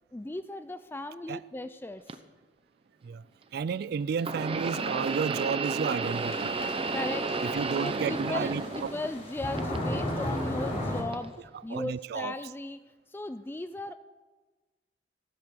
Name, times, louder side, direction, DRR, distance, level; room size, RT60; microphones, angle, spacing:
voice 1, 0.1-2.2 6.9-7.3 7.8-12.8 13.1-13.9, left 2 dB, 10° left, 0.4 m, -37 dB
sound 1, 2.1-2.2 4.2-9.2 9.6-10.4 11.1-11.3 12.2-12.3, right 3 dB, 30° right, 0.8 m, -32 dB
voice 2, 3.5-6.6 7.4-8.9 11.7-12.4, right 6 dB, 60° right, 0.3 m, -32 dB
sound 2, 6.0-11.0, left 1 dB, 40° left, 4.2 m, -35 dB
15.5 x 10.5 x 6.7 m
head